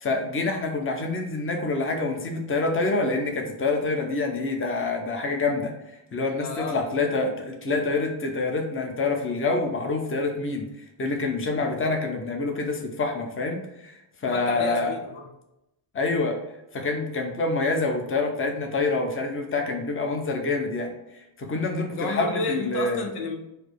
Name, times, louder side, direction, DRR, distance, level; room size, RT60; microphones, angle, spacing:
voice 1, 0.0-5.7 6.1-10.7 11.0-13.9 14.2-14.9 15.9-16.4 16.7-20.9 21.4-23.1, left 3 dB, 25° left, 2 dB, 0.9 m, -26 dB
voice 2, 6.4-7.1 11.6-12.0 14.3-15.3 21.9-23.4, left 3 dB, 85° left, 3 dB, 0.9 m, -32 dB
4.8 x 2.1 x 4.6 m, 0.90 s
cardioid pair, 85°, 49 cm